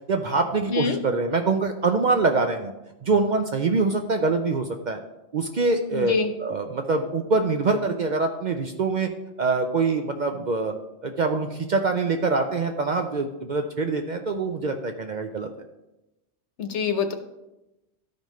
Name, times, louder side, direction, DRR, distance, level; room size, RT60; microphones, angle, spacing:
voice 1, 0.1-2.7 3.0-5.0 5.3-6.1 6.4-9.1 9.4-10.7 11.0-15.5, right 3 dB, 55° right, 5 dB, 0.5 m, -24 dB
voice 2, 5.9-6.3 16.6-17.1, left 5 dB, 75° left, 7 dB, 1.1 m, -25 dB
13.0 x 5.2 x 3.1 m, 0.97 s
omnidirectional pair, 1.2 m